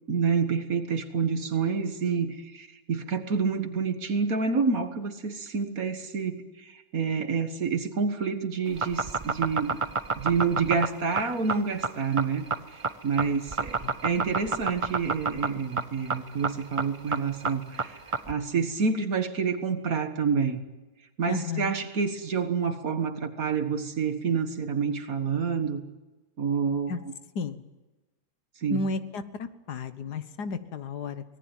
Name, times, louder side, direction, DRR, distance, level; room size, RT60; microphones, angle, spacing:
voice 1, 0.1-9.8 10.1-18.0 18.3-20.6 21.2-25.8 26.4-27.1 28.6-28.8, right 5 dB, 60° right, 8 dB, 2.0 m, -28 dB
sound 1, 8.7-18.3, right 4 dB, 35° right, 0.5 m, -29 dB
voice 2, 21.3-21.8 26.9-27.0 27.4-27.6 28.7-31.2, left 4 dB, 80° left, 11 dB, 1.8 m, -33 dB
25.0 x 18.5 x 9.1 m, 1.1 s
omnidirectional pair, 1.7 m